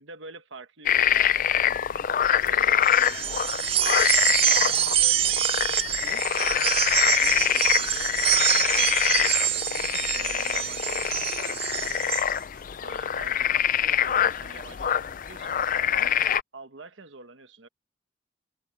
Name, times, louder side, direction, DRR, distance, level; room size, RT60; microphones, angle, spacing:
voice 1, 0.0-1.8 2.4-5.4 5.7-6.2 7.1-12.2 12.8-16.2 16.5-17.7, right 3 dB, 75° right, 1.3 m, -46 dB
sound 1, 0.8-16.4, left 10 dB, 45° left, 0.4 m, -25 dB
sound 2, 2.8-12.3, right 11 dB, 30° right, 0.3 m, -26 dB
head